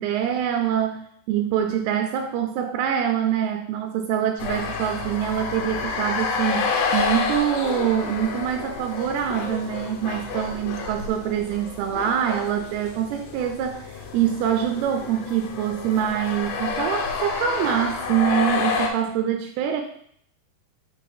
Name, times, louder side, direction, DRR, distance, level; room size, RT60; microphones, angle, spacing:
voice 1, 0.0-19.8, right 9 dB, 85° right, 5 dB, 2.5 m, -25 dB
sound 1, 4.4-18.9, left 5 dB, 75° left, 2.4 m, -29 dB
6.0 x 3.4 x 4.8 m, 0.65 s
omnidirectional pair, 4.5 m